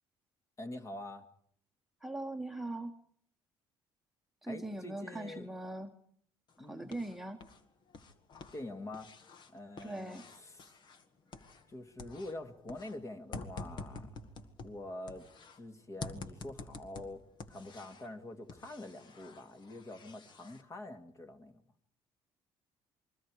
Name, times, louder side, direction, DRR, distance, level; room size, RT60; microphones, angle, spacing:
voice 1, 0.6-1.3 4.5-5.5 6.6-6.9 8.5-9.1 9.5-10.7 11.7-14.1 14.6-15.3 15.6-21.6, left 2 dB, 30° left, 6 dB, 2.4 m, -45 dB
voice 2, 2.0-2.9 4.4-5.9 6.6-7.4 9.8-10.2, right 2 dB, 5° right, 3 dB, 1.4 m, -40 dB
sound 1, 6.5-7.6 7.9-11.7 12.0-15.6 16.0-18.1 18.5-20.6, left 4 dB, 50° left, 1.9 m, -48 dB
28.5 x 22.5 x 4.9 m, 0.63 s
cardioid pair, 100°, 10 cm